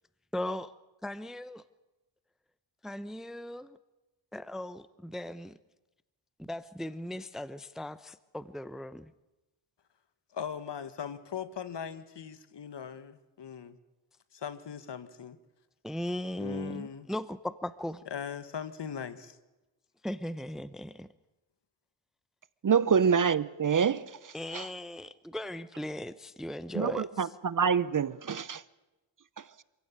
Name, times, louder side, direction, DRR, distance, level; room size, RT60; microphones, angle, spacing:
voice 1, 0.3-0.7 1.0-1.6 2.8-3.8 4.3-5.6 6.4-9.1 15.8-18.0 20.0-21.1 24.3-27.3, left 1 dB, ahead, 0.8 m, -38 dB
voice 2, 10.3-13.8 14.3-15.4 16.4-17.1 18.1-19.4, left 7 dB, 55° left, 1.8 m, -39 dB
voice 3, 22.6-24.7 26.7-28.6, right 6 dB, 40° right, 0.9 m, -27 dB
26.5 x 16.0 x 9.0 m
cardioid pair, 70°, 50 cm